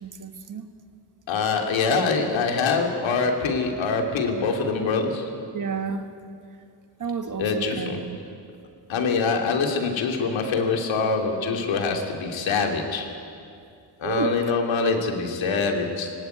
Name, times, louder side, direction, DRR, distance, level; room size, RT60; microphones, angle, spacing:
voice 1, 0.0-0.6 5.5-6.1 7.0-8.2 14.0-14.3, right 5 dB, 40° right, 8 dB, 1.5 m, -31 dB
voice 2, 1.3-5.3 7.4-8.0 8.9-13.1 14.0-16.1, left 4 dB, 70° left, 3 dB, 3.0 m, -24 dB
18.5 x 18.0 x 9.3 m, 2.4 s
cardioid pair, 100°, 47 cm